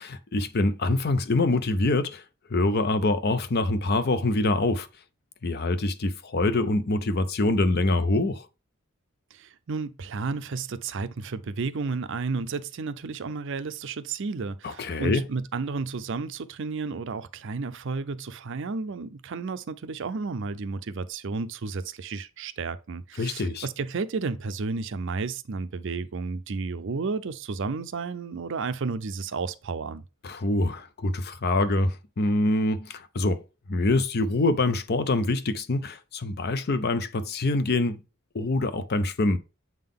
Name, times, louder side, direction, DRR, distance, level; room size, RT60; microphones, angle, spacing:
voice 1, 0.0-2.2 2.5-4.9 5.4-8.5 14.6-15.2 23.2-23.7 30.2-33.4 33.7-38.0 38.3-39.4, left 2 dB, 45° left, 0.5 m, -25 dB
voice 2, 9.3-30.0, right 4 dB, 60° right, 0.5 m, -32 dB
7.6 x 3.7 x 3.7 m
head